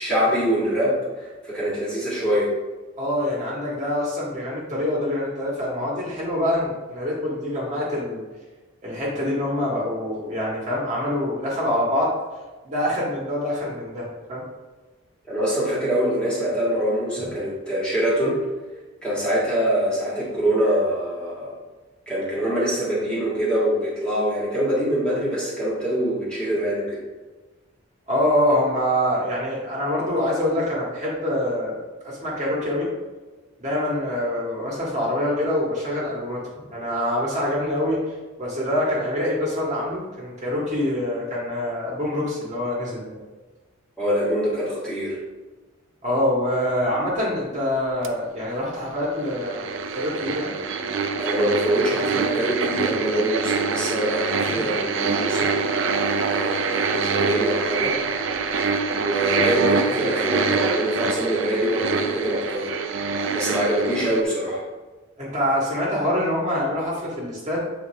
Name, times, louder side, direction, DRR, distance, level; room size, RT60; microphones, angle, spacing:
voice 1, 0.0-2.5 15.3-18.4 19.0-21.5 22.1-27.0 44.0-45.2 51.2-55.5 56.3-58.0 59.0-62.7 63.3-64.6, equal, 5° left, -8 dB, 1.9 m, -24 dB
voice 2, 3.0-8.2 8.8-12.1 12.6-14.4 17.2-17.3 28.1-32.9 33.6-36.4 36.7-38.0 38.4-43.2 46.0-50.5 54.5-54.7 65.2-67.6, left 1 dB, 35° right, -5 dB, 1.8 m, -25 dB
sound 1, 48.0-48.1 49.2-64.2, right 4 dB, 65° right, 0.5 m, -25 dB
8.1 x 4.5 x 3.4 m, 1.3 s
head